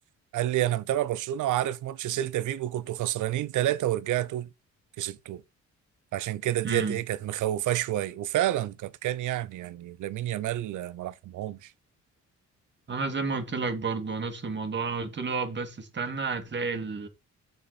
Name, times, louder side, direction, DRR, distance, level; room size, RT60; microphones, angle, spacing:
voice 1, 0.3-4.5 5.0-5.4 6.1-11.7, right 13 dB, 80° right, 1.0 m, -29 dB
voice 2, 6.6-7.0 12.9-17.1, right 4 dB, 35° right, 2.6 m, -31 dB
8.0 x 6.7 x 4.3 m
cardioid pair, 90°, 30 cm